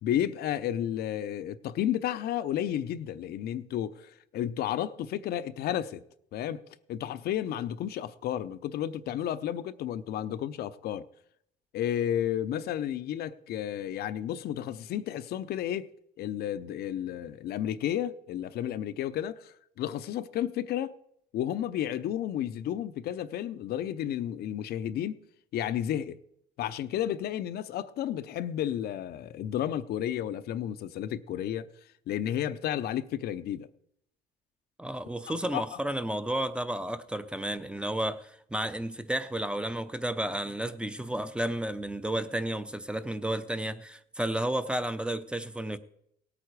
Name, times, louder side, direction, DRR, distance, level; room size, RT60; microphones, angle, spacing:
voice 1, 0.0-6.0 6.3-11.1 11.7-15.9 16.2-20.9 21.3-25.2 25.5-26.2 26.6-31.7 32.1-33.7 35.3-35.8, left 11 dB, 70° left, 0.7 m, -32 dB
voice 2, 34.8-45.8, right 1 dB, 5° right, 0.7 m, -32 dB
18.0 x 8.5 x 4.8 m
cardioid pair, 110°, 17 cm